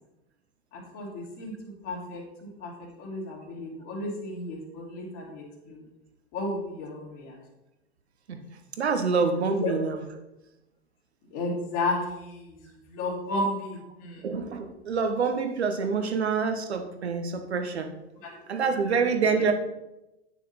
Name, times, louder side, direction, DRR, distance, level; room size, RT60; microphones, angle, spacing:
voice 1, 0.7-2.2 2.6-2.7 3.0-5.8 6.3-7.4 9.6-9.8 11.3-12.6 12.9-14.2 18.2-18.3, left 2 dB, 45° left, -2 dB, 3.0 m, -33 dB
voice 2, 8.8-10.0 14.2-17.9 18.5-19.5, right 5 dB, 75° right, 6 dB, 1.1 m, -26 dB
9.3 x 6.1 x 4.3 m, 0.95 s
figure-of-eight pair, 85°, 33 cm